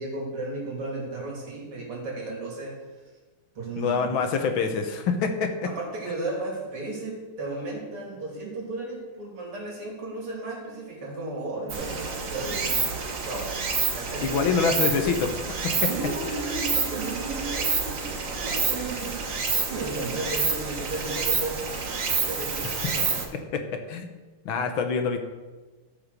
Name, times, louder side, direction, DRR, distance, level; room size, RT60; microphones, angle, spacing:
voice 1, 0.0-2.8 3.6-4.1 5.7-12.9 13.3-13.5 13.9-14.8 15.9-19.3 19.7-21.8 22.2-23.1, right 2 dB, 85° right, -2 dB, 3.9 m, -34 dB
voice 2, 3.8-5.7 14.2-15.3 22.6-22.7 23.5-23.6 23.9-24.1 24.5-25.2, left 5 dB, 65° left, 6 dB, 1.8 m, -25 dB
Stream, 11.7-23.2, right 5 dB, 45° right, 1.4 m, -28 dB
13.5 x 5.7 x 6.7 m, 1.3 s
omnidirectional pair, 2.4 m